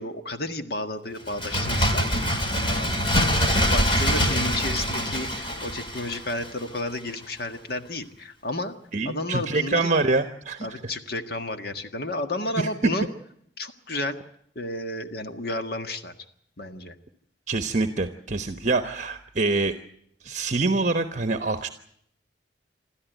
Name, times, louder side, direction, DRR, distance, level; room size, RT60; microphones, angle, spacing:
voice 1, 0.0-2.3 2.7-8.8 9.0-9.9 10.6-13.1 13.6-14.2 14.6-16.1 16.6-17.0, left 1 dB, 60° left, 7 dB, 1.7 m, -32 dB
Bird, 1.2-6.8 7.1-7.2, equal, 30° left, 3.2 m, -24 dB
voice 2, 8.9-10.8 12.6-12.9 17.5-19.7 20.2-21.7, right 3 dB, 40° right, 8 dB, 1.0 m, -25 dB
28.5 x 13.0 x 9.2 m, 0.70 s
head